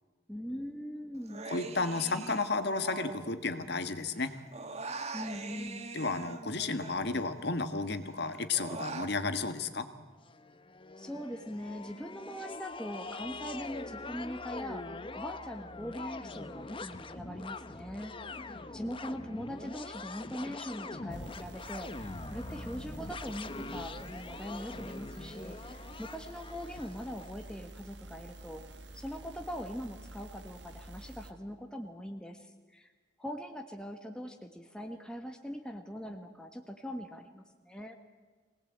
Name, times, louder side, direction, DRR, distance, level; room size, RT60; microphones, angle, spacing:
voice 1, 0.3-1.5 5.1-5.9 11.0-14.8 15.1-18.1 18.7-28.6 28.9-32.9 33.2-38.0, equal, 5° left, 4 dB, 1.3 m, -41 dB
Human voice, 1.3-3.9 4.2-7.7 8.0-9.1, right 3 dB, 35° right, 1.4 m, -43 dB
voice 2, 1.4-4.3 5.9-9.9, left 3 dB, 60° left, 9 dB, 1.5 m, -32 dB
sound 1, 10.3-27.3, left 3 dB, 30° left, 0.8 m, -43 dB
sound 2, 21.1-31.3, right 1 dB, 65° right, 1.7 m, -49 dB
23.5 x 18.5 x 8.7 m, 1.4 s
head